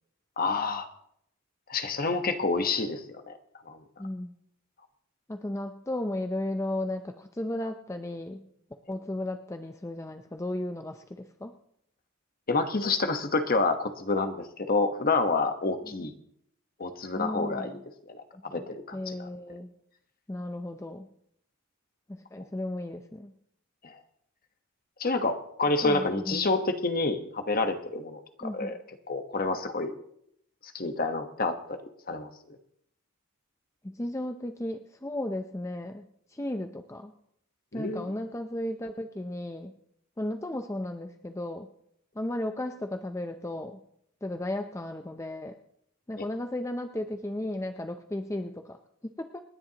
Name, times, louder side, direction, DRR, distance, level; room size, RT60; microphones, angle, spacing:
voice 1, 0.4-0.9 1.7-3.0 3.3-3.4 3.7-3.8 12.5-16.1 16.8-17.8 18.1-18.2 18.5-19.3 23.8-23.9 25.0-28.7 29.1-29.9 30.7-31.8 32.1-32.3 37.7-38.1 46.2-46.3, left 3 dB, 45° left, 7 dB, 1.1 m, -28 dB
voice 2, 4.0-4.3 5.3-8.5 8.9-11.5 15.9-16.0 17.1-17.8 18.3-19.7 20.3-21.1 22.1-23.3 25.8-26.4 28.4-28.8 33.8-37.1 37.7-39.7 40.2-41.7 42.2-43.8 44.2-45.6 46.1-48.8 49.0-49.4, left 1 dB, 15° left, 6 dB, 0.5 m, -35 dB
28.0 x 10.5 x 2.9 m, 0.72 s
head